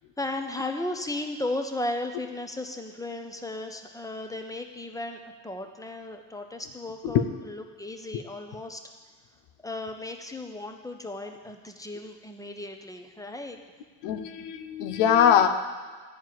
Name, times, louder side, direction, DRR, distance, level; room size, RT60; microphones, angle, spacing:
voice 1, 0.2-8.8 9.6-13.6, left 2 dB, 5° left, 5 dB, 1.1 m, -35 dB
voice 2, 14.0-15.5, left 9 dB, 90° left, 8 dB, 0.7 m, -22 dB
11.0 x 4.6 x 7.7 m, 1.5 s
supercardioid pair, 60°, 50 cm